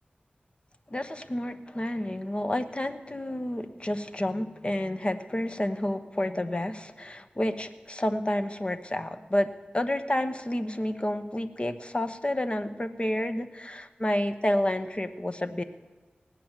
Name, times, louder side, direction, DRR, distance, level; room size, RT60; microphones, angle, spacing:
voice 1, 0.9-9.5 9.7-15.6, left 1 dB, 30° left, 9 dB, 1.0 m, -30 dB
19.0 x 8.4 x 7.4 m, 1.3 s
wide cardioid pair, 60°, 4 cm